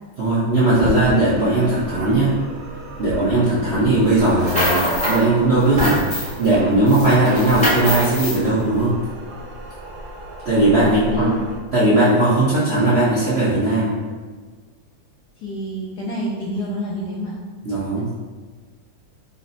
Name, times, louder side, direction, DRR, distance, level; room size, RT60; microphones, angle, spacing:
voice 1, 0.2-2.3 3.0-8.9 10.4-11.4 11.7-14.0 17.6-18.1, right 2 dB, 55° right, -11 dB, 0.7 m, -18 dB
sound 1, 0.5-11.6, right 1 dB, 85° right, 1.4 m, -34 dB
sound 2, 4.2-5.2 5.6-6.5 6.9-8.4, equal, 5° left, 0.6 m, -23 dB
voice 2, 10.8-11.5 15.4-17.4 18.0-18.1, equal, 75° left, -4 dB, 0.9 m, -28 dB
4.0 x 2.1 x 4.0 m, 1.5 s
omnidirectional pair, 2.2 m